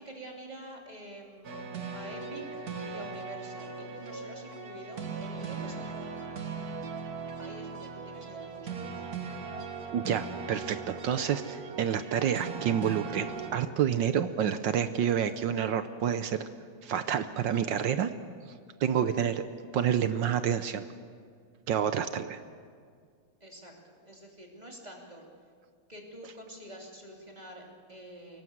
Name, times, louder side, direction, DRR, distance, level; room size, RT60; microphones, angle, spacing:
voice 1, 0.0-6.3 7.4-9.2 23.4-25.2 25.9-28.4, right 1 dB, 20° right, 0 dB, 3.0 m, -47 dB
sound 1, 1.4-13.5, right 5 dB, 45° right, 2.0 m, -39 dB
voice 2, 9.9-16.5 16.8-18.1 18.8-19.4 19.7-20.9 21.7-22.4, right 8 dB, 65° right, 11 dB, 1.3 m, -28 dB
22.5 x 18.5 x 7.9 m, 2.1 s
omnidirectional pair, 2.4 m